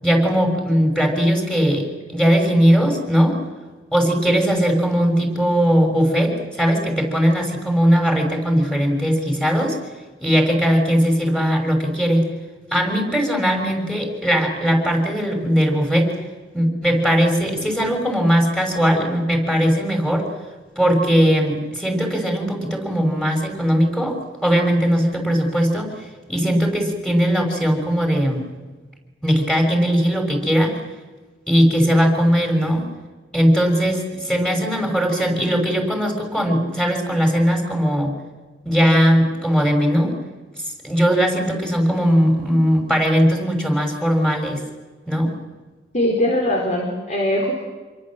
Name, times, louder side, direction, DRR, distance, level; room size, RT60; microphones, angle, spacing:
voice 1, 0.0-3.4 3.9-9.8 10.2-12.2 12.7-16.1 16.5-20.3 20.8-25.9 26.3-28.4 29.2-30.7 31.5-32.9 33.3-38.2 38.6-40.2 40.8-44.6 45.1-45.3, equal, 5° left, 2 dB, 6.2 m, -19 dB
voice 2, 45.9-47.5, left 1 dB, 40° left, 1 dB, 4.4 m, -21 dB
28.0 x 23.5 x 7.6 m, 1.3 s
head